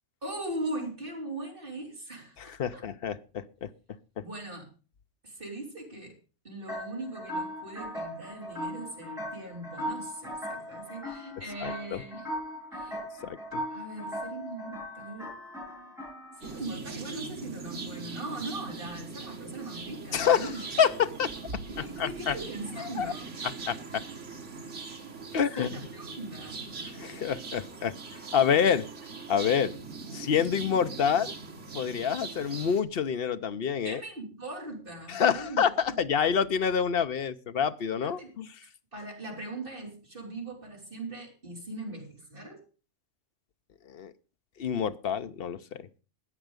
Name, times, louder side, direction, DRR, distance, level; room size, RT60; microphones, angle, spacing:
voice 1, 0.2-2.8 4.2-4.7 5.2-6.2 6.4-12.3 12.7-13.0 13.7-15.3 16.3-20.6 21.6-23.3 25.3-26.6 33.8-36.0 38.0-38.3 38.9-42.6, right 2 dB, 50° right, 0 dB, 4.3 m, -40 dB
voice 2, 2.4-3.7 4.2-4.3 11.6-12.0 13.2-13.6 20.1-22.3 22.8-23.1 23.7-24.0 25.3-25.7 26.9-28.0 28.3-28.9 29.3-29.8 30.1-31.3 31.7-34.0 35.1-38.5 43.9-44.1 44.6-45.9, left 7 dB, 60° left, 12 dB, 0.9 m, -27 dB
sound 1, 6.7-16.6, equal, ahead, 7.3 m, -38 dB
sound 2, 16.4-32.8, right 4 dB, 80° right, 2.0 m, -41 dB
13.5 x 9.1 x 5.1 m, 0.34 s
omnidirectional pair, 1.2 m